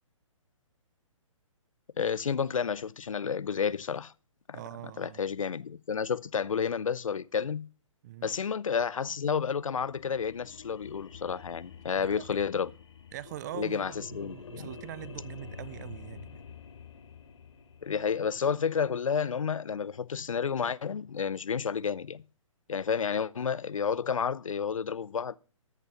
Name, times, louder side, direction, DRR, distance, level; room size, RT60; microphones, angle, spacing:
voice 1, 2.0-4.1 4.5-4.6 5.0-7.7 8.2-12.7 13.6-14.7 17.8-22.2 22.7-25.4, left 6 dB, 75° left, 0.6 m, -31 dB
voice 2, 4.5-5.2 8.0-8.3 12.0-12.4 13.1-16.4, right 14 dB, 35° right, 0.5 m, -43 dB
sound 1, 9.5-18.9, left 6 dB, 60° left, 1.6 m, -48 dB
14.0 x 6.7 x 6.0 m
figure-of-eight pair, 135°, 17 cm